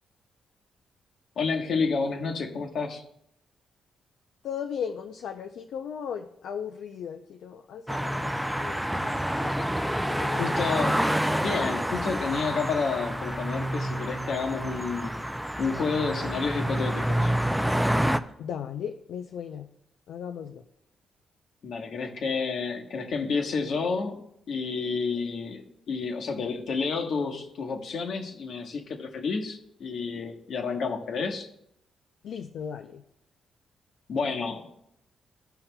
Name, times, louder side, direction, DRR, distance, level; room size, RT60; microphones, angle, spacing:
voice 1, 1.4-3.0 10.3-11.1 11.4-15.1 15.6-17.3 21.6-24.2 24.5-31.5 34.1-34.7, left 5 dB, 65° left, 3 dB, 1.2 m, -30 dB
voice 2, 4.4-9.1 9.4-9.7 10.1-10.6 18.4-19.7 20.1-20.6 32.2-33.0, left 8 dB, 80° left, 4 dB, 0.4 m, -37 dB
sound 1, 7.9-18.2, equal, 5° right, 0.4 m, -28 dB
15.5 x 5.6 x 2.2 m, 0.76 s
cardioid pair, 110°, 0 cm